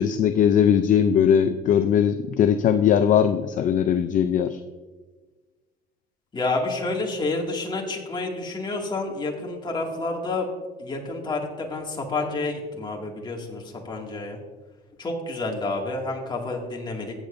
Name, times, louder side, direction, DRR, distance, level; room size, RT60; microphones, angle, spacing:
voice 1, 0.0-4.6, left 8 dB, 50° left, 9 dB, 0.5 m, -20 dB
voice 2, 6.3-10.5 10.8-14.4 15.0-17.1, left 2 dB, 25° left, 0 dB, 2.2 m, -29 dB
15.0 x 8.9 x 2.6 m, 1.3 s
cardioid pair, 110°, 17 cm